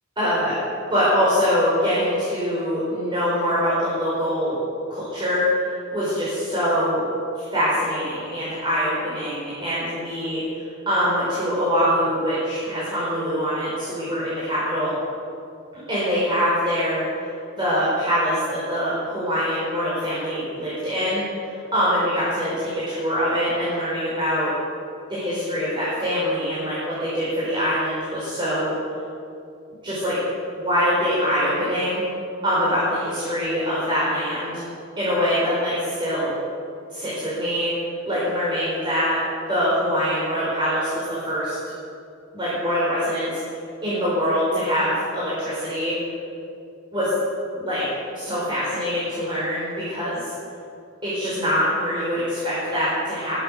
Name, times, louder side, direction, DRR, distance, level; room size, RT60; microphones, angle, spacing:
voice 1, 0.2-0.6 0.9-4.6 4.9-5.5 5.9-7.0 7.3-14.9 15.9-17.1 17.6-21.2 21.7-24.5 25.1-28.7 29.8-30.2 30.6-32.0 32.4-34.6 35.0-36.3 36.9-37.7 38.0-39.2 39.5-41.6 42.3-43.4 43.8-46.0 46.9-47.1 47.5-47.8 48.1-50.2 51.0-53.4, equal, 25° right, -10 dB, 5.1 m, -24 dB
20.5 x 10.0 x 6.8 m, 2.6 s
head